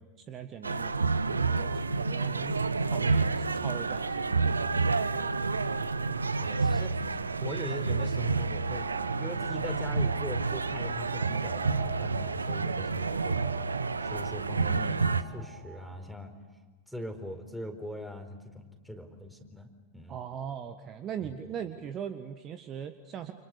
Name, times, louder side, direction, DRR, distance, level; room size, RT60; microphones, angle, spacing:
voice 1, 0.0-2.6 2.9-5.5 20.1-23.3, right 8 dB, 30° right, 9 dB, 1.6 m, -41 dB
sound 1, 0.6-15.2, right 4 dB, 75° right, 1.0 m, -29 dB
voice 2, 6.4-7.1 7.4-8.8 9.2-13.4 14.0-16.3 16.9-19.7 19.9-20.2 21.2-21.5, equal, ahead, 5 dB, 4.4 m, -41 dB
sound 2, 8.4-16.1, right 7 dB, 55° right, 3.8 m, -45 dB
30.0 x 29.0 x 6.9 m, 1.3 s
figure-of-eight pair, 90°, 0 cm